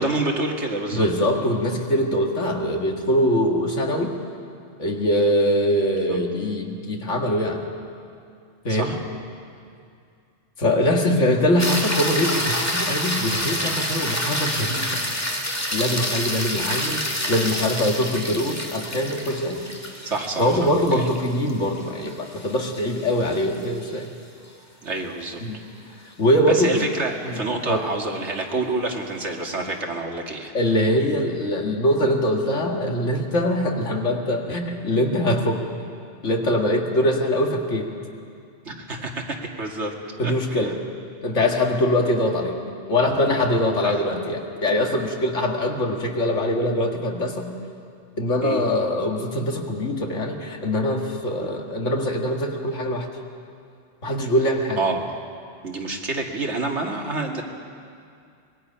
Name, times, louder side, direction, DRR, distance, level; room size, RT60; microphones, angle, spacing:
voice 1, 0.0-1.1 8.7-9.0 20.0-21.1 24.8-25.4 26.5-30.5 38.7-39.9 40.2-40.7 43.8-44.0 48.4-48.6 54.8-55.1 55.6-57.4, right 2 dB, 65° right, 1 dB, 2.3 m, -28 dB
voice 2, 0.9-4.2 4.8-7.7 8.6-9.0 10.6-14.9 15.7-19.6 20.4-24.1 25.4-25.6 26.2-26.8 27.3-27.4 27.7-27.9 30.5-35.6 36.2-37.9 40.2-40.8 41.2-42.6 42.9-47.5 48.2-53.1 54.0-54.8, left 1 dB, 70° left, 1 dB, 2.2 m, -23 dB
sound 1, 11.6-24.0 28.5-28.6, equal, 10° left, 1.9 m, -28 dB
24.5 x 21.5 x 5.6 m, 2.4 s
omnidirectional pair, 1.3 m